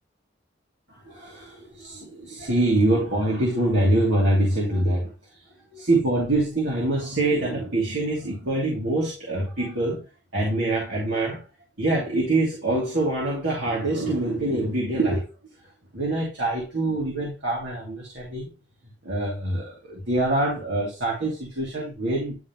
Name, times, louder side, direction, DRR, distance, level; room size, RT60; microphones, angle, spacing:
voice 1, 1.0-5.1 5.7-10.0 10.3-11.4 11.8-15.2 15.9-18.5 19.0-22.4, right 1 dB, 75° right, 2.8 m, -24 dB
11.0 x 3.8 x 3.0 m
head